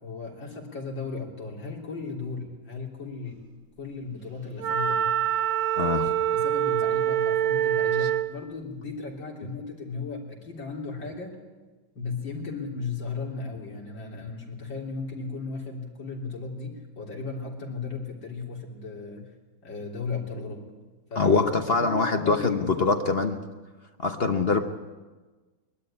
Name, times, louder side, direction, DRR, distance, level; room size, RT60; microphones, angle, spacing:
voice 1, 0.0-3.4 3.8-5.1 6.3-11.4 12.0-19.3 19.6-20.6 21.1-21.4 21.7-23.1, left 4 dB, 60° left, -1 dB, 4.0 m, -36 dB
Wind instrument woodwind instrument, 4.6-8.3, right 10 dB, 50° right, 1.1 m, -25 dB
voice 2, 5.8-6.1 21.2-23.4 24.0-24.6, left 4 dB, 45° left, 5 dB, 0.8 m, -23 dB
21.5 x 13.0 x 9.9 m, 1.3 s
omnidirectional pair, 2.3 m